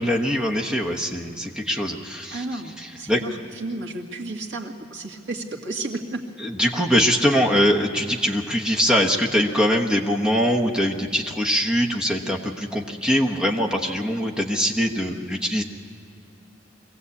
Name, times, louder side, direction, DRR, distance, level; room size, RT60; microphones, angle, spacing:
voice 1, 0.0-3.2 6.4-15.6, equal, 5° right, 0 dB, 1.1 m, -22 dB
voice 2, 2.3-6.2, right 2 dB, 80° right, 0 dB, 2.1 m, -32 dB
23.0 x 17.0 x 8.3 m, 2.5 s
head